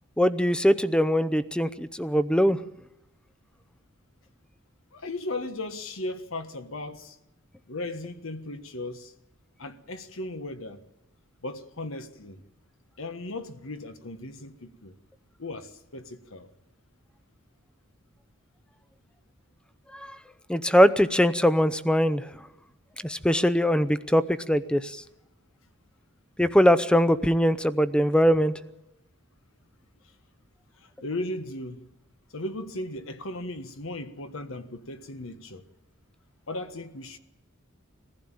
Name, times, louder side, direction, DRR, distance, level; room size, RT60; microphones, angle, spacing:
voice 1, 0.2-2.6 19.9-20.2 20.5-22.3 23.0-25.0 26.4-28.5, equal, 5° left, 0.6 m, -22 dB
voice 2, 4.9-7.2 7.7-9.1 9.6-10.8 11.4-12.4 13.0-14.9 15.4-16.5 30.8-31.9 32.3-35.6 36.5-37.2, left 2 dB, 75° left, 1.4 m, -36 dB
21.5 x 15.0 x 9.0 m
head